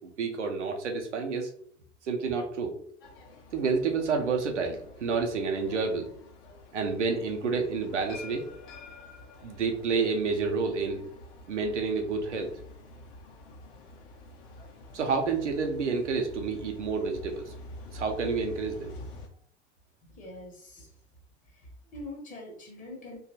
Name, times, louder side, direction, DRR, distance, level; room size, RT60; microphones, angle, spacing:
voice 1, 0.2-1.5 2.0-2.8 3.5-6.1 6.7-8.5 9.4-11.0 11.5-12.5 14.9-17.5 17.9-19.0, right 4 dB, 80° right, 3 dB, 0.6 m, -29 dB
sound 1, 3.0-19.3, left 2 dB, 50° left, 0.6 m, -48 dB
voice 2, 20.0-21.0 21.4-23.2, left 1 dB, 20° left, 0 dB, 0.8 m, -44 dB
2.8 x 2.3 x 2.7 m, 0.62 s
figure-of-eight pair, 80°, 35 cm